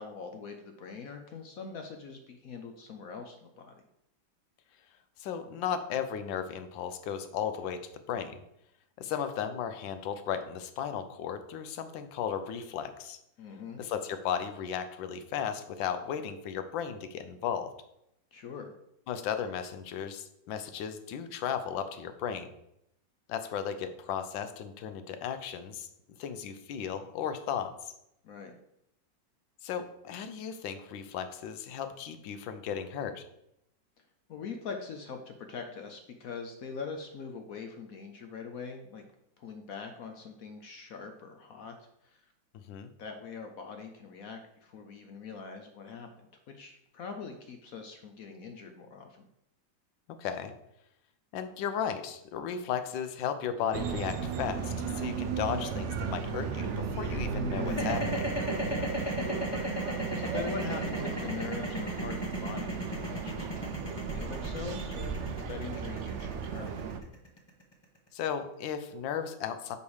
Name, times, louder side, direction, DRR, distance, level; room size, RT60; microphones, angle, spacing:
voice 1, 0.0-3.8 13.4-13.8 18.3-18.7 28.2-28.5 34.3-39.0 39.4-41.8 42.0-42.2 43.0-49.3 57.3-58.1 58.6-66.8, left 5 dB, 65° left, 5 dB, 0.9 m, -43 dB
voice 2, 5.2-7.8 8.1-8.4 9.0-13.2 13.8-17.7 19.1-22.5 23.3-25.9 26.2-27.9 29.6-33.2 42.7-42.9 50.2-50.5 51.3-58.2 68.1-69.8, left 8 dB, 85° left, 9 dB, 1.4 m, -35 dB
sound 1, 53.7-67.0, right 5 dB, 90° right, 0.6 m, -35 dB
sound 2, 57.7-67.8, right 1 dB, 30° left, 0.5 m, -34 dB
5.2 x 5.0 x 4.8 m, 0.80 s
omnidirectional pair, 2.0 m